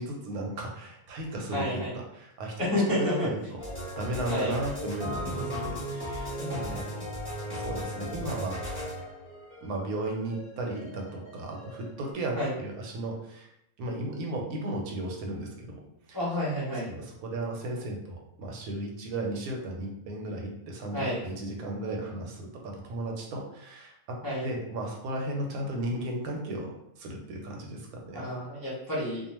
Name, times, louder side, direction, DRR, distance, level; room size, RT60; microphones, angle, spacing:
voice 1, 0.0-3.6 4.0-6.9 7.5-8.6 9.6-13.5 13.8-15.8 16.1-16.2 16.8-28.3, right 1 dB, 80° right, 1 dB, 1.1 m, -35 dB
voice 2, 1.5-1.9 2.6-3.3 4.3-4.5 5.2-5.7 12.4-12.5 16.1-16.9 20.9-21.2 24.2-24.5 28.1-29.3, left 1 dB, 35° left, -8 dB, 0.3 m, -30 dB
sound 1, 3.6-12.1, equal, 10° left, 0.9 m, -37 dB
2.4 x 2.3 x 3.0 m, 0.80 s
omnidirectional pair, 1.6 m